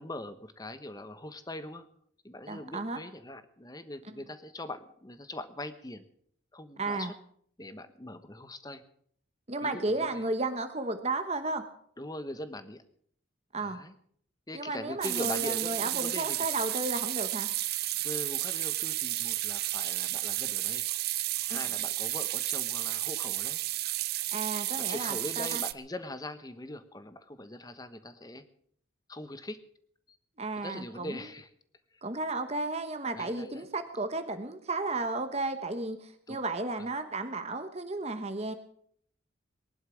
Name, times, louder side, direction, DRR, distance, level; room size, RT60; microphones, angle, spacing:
voice 1, 0.0-1.9 2.2-6.0 6.5-7.1 7.6-8.8 9.6-10.3 12.0-12.8 13.6-13.9 14.5-16.5 18.0-20.9 21.5-23.6 24.8-28.5 29.1-29.6 30.6-31.5 31.9-32.0 33.1-33.7 36.3-36.4 36.8-36.9, left 1 dB, 20° left, 11 dB, 1.1 m, -42 dB
voice 2, 2.5-3.0 6.8-7.1 9.5-11.6 13.5-13.8 14.5-17.5 21.5-21.6 24.3-25.6 30.4-31.2 32.0-38.5, right 2 dB, 30° right, 8 dB, 1.1 m, -33 dB
sound 1, 15.0-25.7, right 16 dB, 50° right, 0.6 m, -32 dB
19.5 x 11.0 x 6.3 m, 0.64 s
head